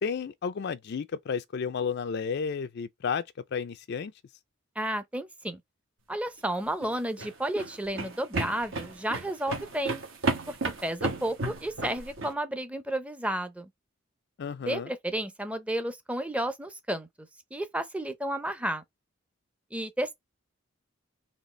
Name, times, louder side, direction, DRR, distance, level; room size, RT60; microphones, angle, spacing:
voice 1, 0.0-3.2 3.5-4.1 14.4-14.9, left 6 dB, 55° left, 0.4 m, -32 dB
voice 2, 4.8-5.6 6.1-10.0 10.5-10.6 10.8-13.7 14.7-17.1 17.5-18.8 19.7-20.2, right 1 dB, 5° right, 0.6 m, -32 dB
sound 1, 6.7-12.3, right 3 dB, 70° right, 1.3 m, -33 dB
4.1 x 2.9 x 3.2 m
head